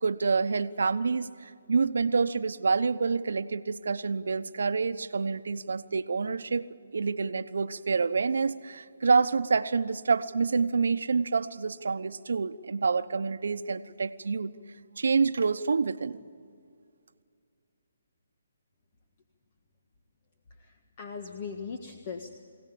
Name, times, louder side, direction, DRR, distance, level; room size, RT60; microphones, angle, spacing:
voice 1, 0.0-6.7 6.9-14.5 15.0-16.2, right 4 dB, 75° right, 11 dB, 1.0 m, -27 dB
voice 2, 20.5-22.4, left 5 dB, 40° left, 5 dB, 1.6 m, -40 dB
24.5 x 17.5 x 8.6 m, 2.3 s
hypercardioid pair, 155°, 0 cm